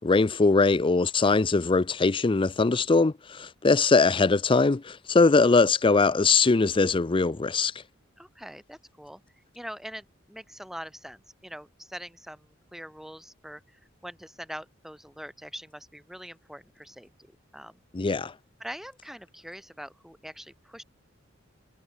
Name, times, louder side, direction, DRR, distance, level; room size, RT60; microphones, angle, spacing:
voice 1, 0.0-7.7 17.9-18.3, left 3 dB, 25° left, 0.5 m, -21 dB
voice 2, 8.2-9.2 9.5-17.1 17.5-17.8 18.6-20.8, equal, ahead, 5.0 m, -43 dB
head